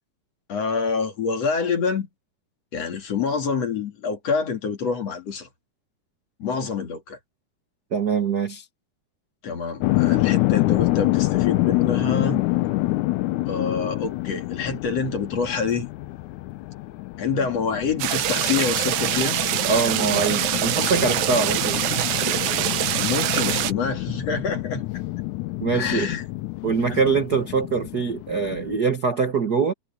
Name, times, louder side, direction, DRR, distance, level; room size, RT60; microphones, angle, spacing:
voice 1, 0.5-2.1 2.7-5.5 6.4-7.2 9.4-12.4 13.5-15.9 17.2-19.4 22.9-24.8 25.7-26.2 26.9-27.0, left 5 dB, 50° left, 3.2 m, -26 dB
voice 2, 7.9-8.6 19.7-22.1 25.6-26.1 26.6-29.7, right 5 dB, 45° right, 1.3 m, -23 dB
sound 1, 9.8-28.8, left 19 dB, 75° left, 1.9 m, -27 dB
sound 2, 18.0-23.7, right 12 dB, 85° right, 2.9 m, -24 dB
omnidirectional pair, 4.0 m